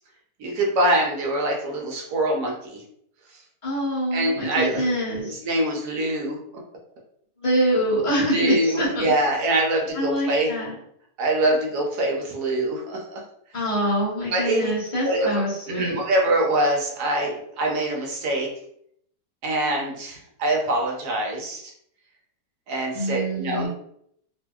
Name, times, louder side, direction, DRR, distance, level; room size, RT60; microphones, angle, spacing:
voice 1, 0.4-2.8 4.1-4.8 5.2-6.4 8.1-10.5 11.2-13.2 14.3-14.7 15.0-18.5 19.4-21.7 22.7-23.7, right 1 dB, 70° right, -1 dB, 1.2 m, -24 dB
voice 2, 3.6-5.3 7.4-9.1 9.9-10.7 13.5-16.0 22.9-23.7, equal, 30° left, -6 dB, 0.7 m, -25 dB
2.7 x 2.6 x 2.2 m, 0.70 s
omnidirectional pair, 1.8 m